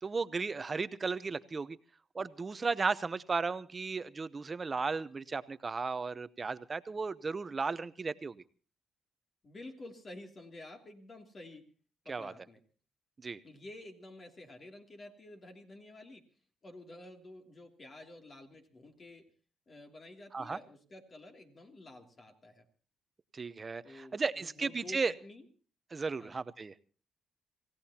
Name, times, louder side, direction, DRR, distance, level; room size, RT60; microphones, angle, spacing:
voice 1, 0.0-1.8 2.1-8.4 12.1-12.3 13.2-13.4 20.3-20.6 23.3-25.1 25.9-26.7, right 4 dB, 30° right, 14 dB, 0.8 m, -35 dB
voice 2, 9.4-11.7 12.0-12.6 13.4-16.3 16.6-19.3 19.7-22.6 23.8-25.5 26.2-26.4, left 1 dB, 40° left, 3 dB, 2.8 m, -50 dB
27.5 x 16.5 x 2.9 m, 0.39 s
cardioid pair, 90°, 0 cm